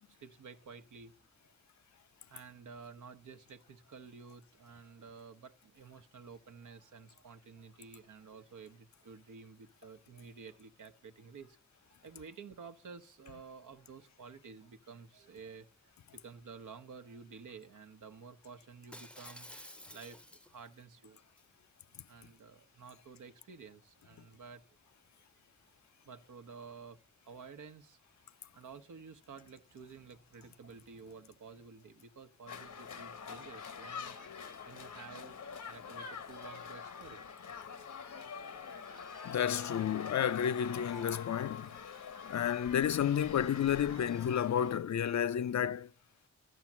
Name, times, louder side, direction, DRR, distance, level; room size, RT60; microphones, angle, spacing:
voice 1, 0.1-1.1 1.4-1.5 2.3-11.6 11.8-21.2 22.1-24.6 26.0-27.0 27.2-28.0 28.2-34.2 34.7-35.4 35.6-37.4, right 5 dB, 90° right, 1.0 m, -52 dB
Shatter, 18.9-20.7 21.2-21.4, left 1 dB, 5° left, 0.6 m, -51 dB
sound 1, 32.5-44.8, left 6 dB, 85° left, 1.2 m, -45 dB
voice 2, 39.2-41.7 42.2-45.9, left 9 dB, 70° left, 0.5 m, -31 dB
12.0 x 10.5 x 7.3 m
cardioid pair, 60°, 30 cm